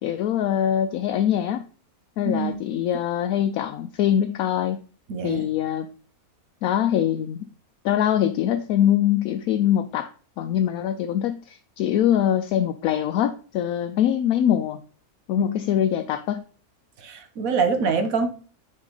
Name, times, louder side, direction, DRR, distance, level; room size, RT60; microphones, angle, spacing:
voice 1, 0.0-1.6 2.2-4.8 5.2-5.9 6.6-7.5 7.8-10.1 10.4-14.8 15.3-16.4, left 10 dB, 75° left, 7 dB, 1.0 m, -23 dB
voice 2, 2.2-2.8 5.1-5.5 17.0-18.3, right 5 dB, 70° right, 7 dB, 1.4 m, -25 dB
6.4 x 4.5 x 3.8 m, 0.40 s
omnidirectional pair, 1.6 m